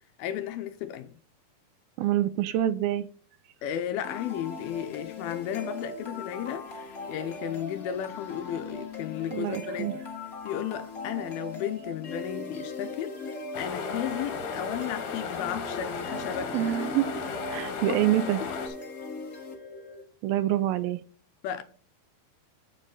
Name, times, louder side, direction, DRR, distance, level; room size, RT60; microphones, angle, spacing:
voice 1, 0.2-1.2 3.6-10.0 10.4-13.2 13.6-16.7 17.5-18.0 18.4-18.7 21.4-21.6, left 10 dB, 80° left, 2.5 m, -34 dB
voice 2, 2.0-3.1 9.3-9.9 16.5-17.1 17.5-18.4 20.2-21.0, right 13 dB, 80° right, 2.3 m, -26 dB
sound 1, 4.0-20.0, left 3 dB, 45° left, 1.1 m, -39 dB
sound 2, 13.5-18.7, left 5 dB, 65° left, 2.7 m, -36 dB
7.9 x 7.5 x 3.8 m
omnidirectional pair, 4.6 m